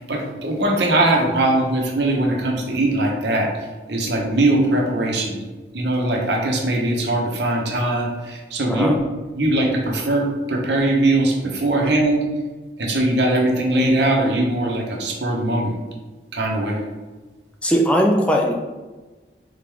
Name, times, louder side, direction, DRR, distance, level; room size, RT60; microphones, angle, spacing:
voice 1, 0.0-3.5 3.9-5.4 5.7-9.0 9.3-12.2 12.8-15.8 16.3-16.8, right 1 dB, 75° right, 0 dB, 0.8 m, -20 dB
voice 2, 17.6-18.5, equal, 5° left, 0 dB, 0.3 m, -18 dB
3.7 x 3.3 x 3.5 m, 1.2 s
head